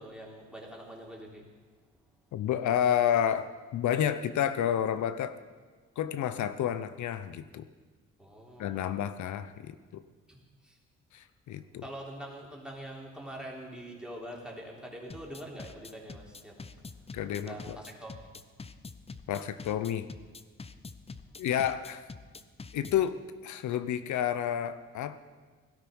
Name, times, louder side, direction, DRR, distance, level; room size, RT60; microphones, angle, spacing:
voice 1, 0.0-1.5 8.2-9.0 10.3-10.8 11.8-16.7 17.3-18.3, right 1 dB, 5° right, -2 dB, 3.6 m, -44 dB
voice 2, 2.3-5.3 6.0-7.6 8.6-10.0 11.1-11.8 17.1-17.8 19.3-20.1 21.4-22.1 22.7-25.2, left 10 dB, 75° left, 12 dB, 0.9 m, -30 dB
sound 1, 15.1-23.1, left 4 dB, 20° left, 0.8 m, -45 dB
17.5 x 12.5 x 5.5 m, 1.5 s
cardioid pair, 90°, 30 cm